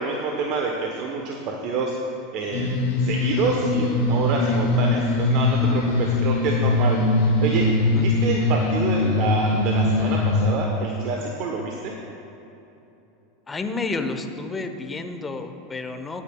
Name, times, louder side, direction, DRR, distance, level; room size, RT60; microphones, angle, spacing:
voice 1, 0.0-2.0 2.3-7.7 8.0-11.9, right 4 dB, 55° right, 0 dB, 1.0 m, -27 dB
sound 1, 2.5-10.5, left 2 dB, 75° left, 1.7 m, -21 dB
voice 2, 13.5-16.2, left 3 dB, 20° left, 7 dB, 1.0 m, -30 dB
20.0 x 8.7 x 2.3 m, 2.9 s
hypercardioid pair, 90°, 0 cm